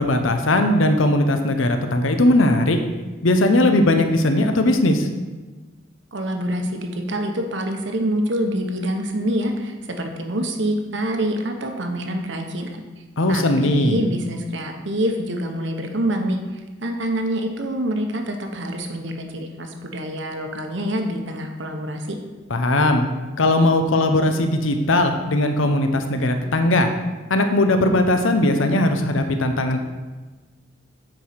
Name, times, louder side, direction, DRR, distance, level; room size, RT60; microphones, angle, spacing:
voice 1, 0.0-2.8 3.2-5.1 13.2-14.0 22.5-23.0 23.4-26.9 27.3-29.8, left 1 dB, 85° left, 6 dB, 0.8 m, -19 dB
voice 2, 6.1-12.8 13.3-22.2, right 1 dB, 70° right, 4 dB, 1.1 m, -26 dB
9.0 x 4.9 x 5.8 m, 1.2 s
head